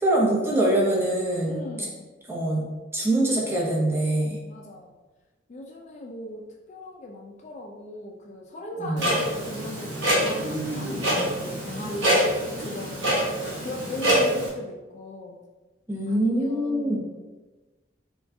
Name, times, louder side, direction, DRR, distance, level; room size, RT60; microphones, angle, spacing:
voice 1, 0.0-1.6 2.3-2.6 2.9-4.4 8.8-9.0 15.9-17.0, right 1 dB, 15° right, -4 dB, 0.7 m, -23 dB
voice 2, 1.5-2.1 4.5-4.9 5.5-6.4 6.7-13.3 13.6-15.4 16.1-17.0, left 1 dB, 40° left, -1 dB, 0.4 m, -38 dB
Clock, 9.0-14.5, right 1 dB, 85° right, 1.0 m, -25 dB
4.4 x 2.3 x 2.7 m, 1.2 s
head